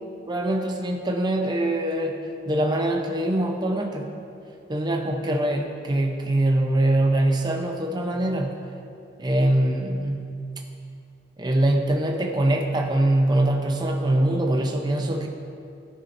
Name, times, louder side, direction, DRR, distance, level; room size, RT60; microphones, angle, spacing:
voice 1, 0.3-2.2 2.5-4.1 4.7-8.6 9.2-10.3 11.4-15.3, right 1 dB, 20° right, 2 dB, 0.6 m, -23 dB
13.5 x 5.6 x 2.6 m, 2.5 s
head